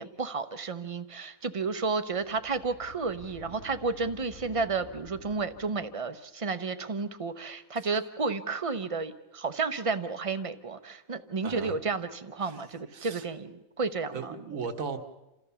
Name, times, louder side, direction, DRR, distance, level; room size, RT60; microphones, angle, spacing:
voice 1, 0.0-14.3, right 4 dB, 30° right, 11 dB, 0.7 m, -32 dB
sound 1, 2.1-6.0, equal, 85° left, 3.2 m, -50 dB
voice 2, 11.4-11.8 12.4-12.6 12.9-13.3 14.1-15.0, right 5 dB, 70° right, 7 dB, 1.7 m, -37 dB
28.5 x 14.0 x 6.9 m, 0.99 s
omnidirectional pair, 1.5 m